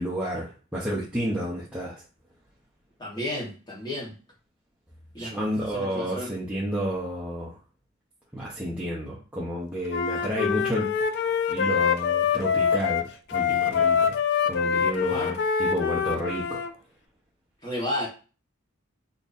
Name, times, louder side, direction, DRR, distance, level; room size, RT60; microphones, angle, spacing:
voice 1, 0.0-2.0 5.2-7.6 8.3-10.9 11.5-14.2 14.5-16.7, equal, 5° right, -7 dB, 0.7 m, -31 dB
voice 2, 3.0-4.1 5.1-6.4 15.1-15.4 17.6-18.1, left 1 dB, 20° left, -4 dB, 1.3 m, -33 dB
Wind instrument woodwind instrument, 9.9-16.7, left 7 dB, 55° left, 0.3 m, -25 dB
3.9 x 2.9 x 2.6 m, 0.35 s
head